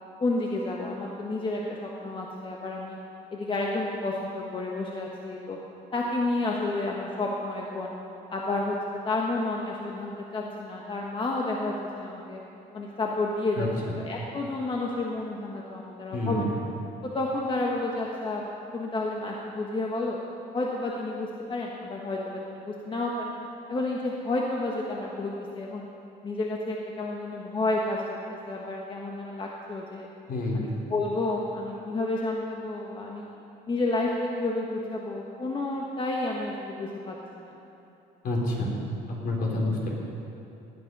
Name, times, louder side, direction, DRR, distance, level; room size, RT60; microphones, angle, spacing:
voice 1, 0.2-3.0 3.3-5.6 5.9-7.9 8.3-8.7 9.0-12.4 12.7-13.7 13.9-16.5 17.1-18.5 18.7-20.2 20.5-23.4 23.7-25.9 26.2-28.0 28.3-30.1 30.5-33.3 33.7-37.6, left 2 dB, 30° left, -2 dB, 1.4 m, -30 dB
voice 2, 16.1-16.4 30.3-30.6 38.2-38.7 39.2-40.0, left 2 dB, 60° left, -2 dB, 3.7 m, -28 dB
18.0 x 9.4 x 5.5 m, 2.9 s
cardioid pair, 110°, 17 cm